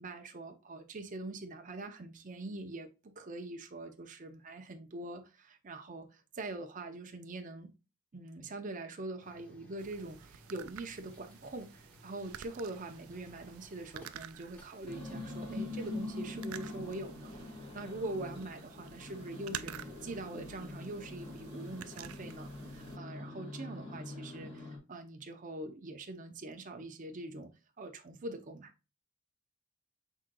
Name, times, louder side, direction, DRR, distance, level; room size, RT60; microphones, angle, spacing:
voice 1, 0.0-2.9 3.2-7.7 8.1-17.3 17.7-27.5 27.8-28.7, right 2 dB, 40° right, 0.6 m, -43 dB
sound 1, 9.2-16.8, equal, 5° left, 1.1 m, -61 dB
sound 2, 9.8-23.0, right 10 dB, 80° right, 0.4 m, -51 dB
sound 3, 14.9-24.8, left 2 dB, 25° left, 1.5 m, -44 dB
6.1 x 3.7 x 2.3 m
head